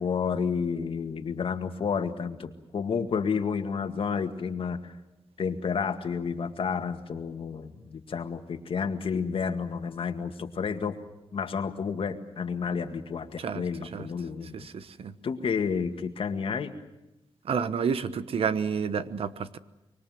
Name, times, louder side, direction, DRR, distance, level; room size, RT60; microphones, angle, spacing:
voice 1, 0.0-4.9 5.4-11.0 11.3-14.7 15.2-16.7, left 6 dB, 65° left, 7 dB, 2.0 m, -30 dB
voice 2, 13.4-14.1 14.5-15.1 17.4-19.6, right 6 dB, 70° right, 13 dB, 1.1 m, -30 dB
25.0 x 23.5 x 7.7 m, 0.97 s
cardioid pair, 100°, 10 cm